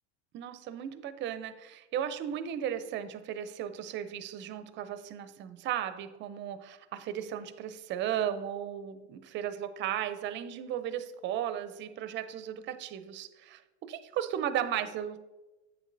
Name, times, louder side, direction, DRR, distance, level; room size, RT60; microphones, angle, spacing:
voice 1, 0.3-15.2, right 10 dB, 35° right, 12 dB, 0.5 m, -35 dB
8.7 x 6.3 x 2.6 m, 1.1 s
supercardioid pair, 130°, 33 cm